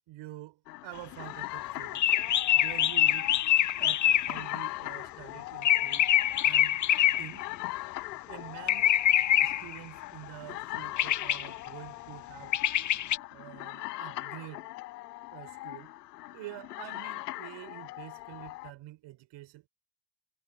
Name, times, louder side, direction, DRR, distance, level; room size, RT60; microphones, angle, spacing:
voice 1, 0.0-2.1 2.5-3.3 3.8-6.1 6.4-6.9 7.2-7.5 8.3-9.0 9.4-12.6 13.3-14.7 15.3-15.9 16.3-19.7, right 17 dB, 70° right, 5.9 m, -47 dB
sound 1, 0.7-18.7, left 18 dB, 85° left, 5.3 m, -41 dB
sound 2, 2.0-4.5 5.6-7.5 8.7-9.8 11.0-11.5 12.5-13.2, left 11 dB, 40° left, 0.7 m, -25 dB
hypercardioid pair, 50°, 47 cm